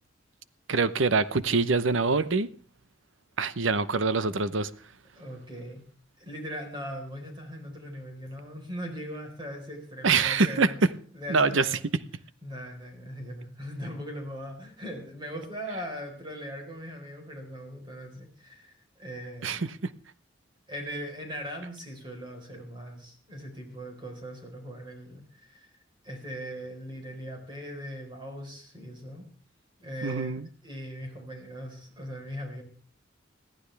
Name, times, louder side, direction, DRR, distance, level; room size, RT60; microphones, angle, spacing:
voice 1, 0.7-2.5 3.4-4.7 10.0-10.7 11.3-11.7 19.4-19.9 30.0-30.5, right 4 dB, 75° right, 0.9 m, -25 dB
voice 2, 5.1-5.8 6.2-10.8 11.1-11.9 12.4-19.7 20.7-25.7 26.0-29.2 29.8-30.3 30.6-32.6, equal, 25° right, 4.3 m, -39 dB
21.5 x 14.5 x 3.4 m
head